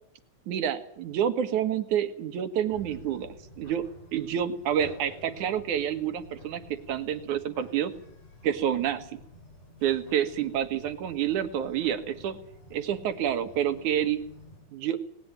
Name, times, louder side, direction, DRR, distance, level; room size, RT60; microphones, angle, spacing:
voice 1, 0.5-3.8 4.1-6.6 6.9-7.9 8.4-9.1 9.8-12.4 12.7-14.2 14.7-15.0, right 9 dB, 80° right, 11 dB, 3.0 m, -28 dB
sound 1, 2.7-14.6, left 1 dB, 80° left, 8.3 m, -50 dB
19.5 x 19.0 x 9.0 m, 0.66 s
omnidirectional pair, 3.5 m